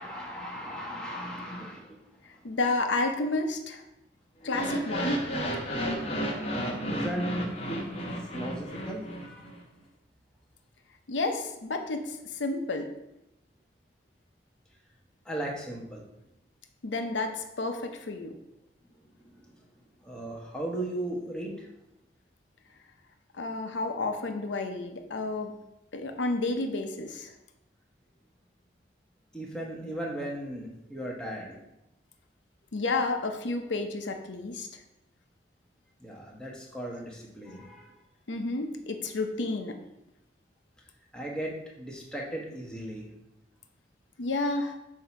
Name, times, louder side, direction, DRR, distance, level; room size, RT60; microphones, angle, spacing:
voice 1, 0.0-2.0 6.5-9.4 15.2-16.0 19.2-19.3 20.0-21.7 29.3-31.6 36.0-37.9 41.1-43.1, right 1 dB, 5° left, -3 dB, 1.1 m, -37 dB
voice 2, 2.4-3.8 4.4-5.2 11.1-12.9 16.8-18.3 23.4-25.5 25.9-27.3 32.7-34.7 38.3-39.8 44.2-44.7, left 3 dB, 90° left, 5 dB, 0.7 m, -31 dB
sound 1, 4.4-9.6, equal, 35° left, 0.9 m, -32 dB
7.6 x 2.8 x 5.8 m, 0.87 s
head